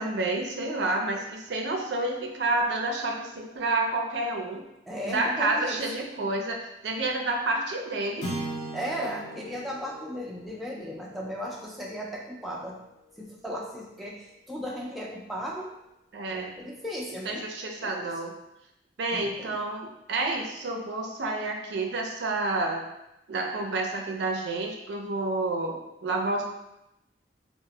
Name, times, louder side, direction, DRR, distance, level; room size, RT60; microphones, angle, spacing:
voice 1, 0.0-4.6 5.1-6.6 6.8-8.3 16.1-16.5 17.2-18.3 19.0-22.8 23.3-26.4, right 2 dB, 70° right, 2 dB, 0.4 m, -29 dB
voice 2, 4.9-6.0 8.7-12.8 13.2-15.7 16.3-17.5 17.8-18.1 19.1-19.6, equal, ahead, -4 dB, 0.3 m, -36 dB
sound 1, 8.2-12.7, right 1 dB, 70° left, 0.7 m, -39 dB
2.0 x 2.0 x 3.7 m, 0.90 s
head